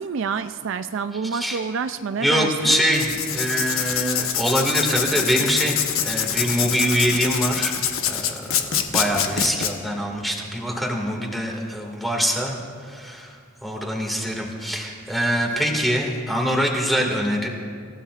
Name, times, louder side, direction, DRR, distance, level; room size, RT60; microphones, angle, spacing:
voice 1, 0.0-2.8, right 5 dB, 65° right, 10 dB, 0.4 m, -28 dB
voice 2, 1.2-1.6 2.2-7.8 8.0-8.4 8.9-12.6 12.9-13.4 13.6-17.5, equal, ahead, 0 dB, 2.1 m, -24 dB
Writing, 2.9-9.7, left 8 dB, 85° left, 1.1 m, -25 dB
28.5 x 15.5 x 2.5 m, 2.2 s
head